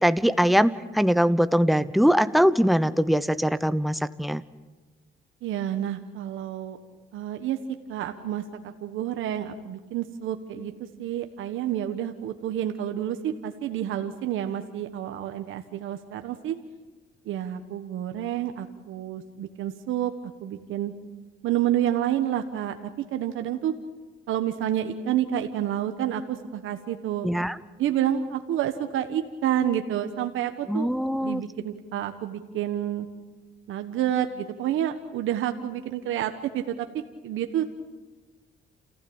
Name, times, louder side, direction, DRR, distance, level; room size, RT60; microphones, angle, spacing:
voice 1, 0.0-4.4 27.2-27.5 30.7-31.4, equal, ahead, 13 dB, 0.9 m, -22 dB
voice 2, 5.4-6.8 7.1-7.6 7.9-16.6 17.2-20.9 21.4-23.7 24.3-27.3 27.8-30.9 31.2-33.1 33.7-37.6, right 11 dB, 85° right, 7 dB, 1.3 m, -29 dB
29.0 x 15.5 x 8.8 m, 1.3 s
cardioid pair, 90°, 20 cm